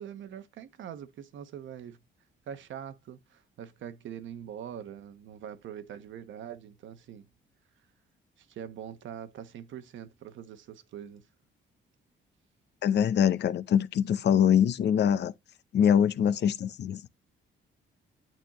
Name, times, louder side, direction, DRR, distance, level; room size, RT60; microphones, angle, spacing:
voice 1, 0.0-2.0 2.5-7.3 8.4-11.3, right 9 dB, 70° right, 1.0 m, -43 dB
voice 2, 12.8-15.3 15.7-17.1, left 8 dB, 60° left, 0.7 m, -24 dB
8.9 x 4.3 x 3.0 m
cardioid pair, 90°, 20 cm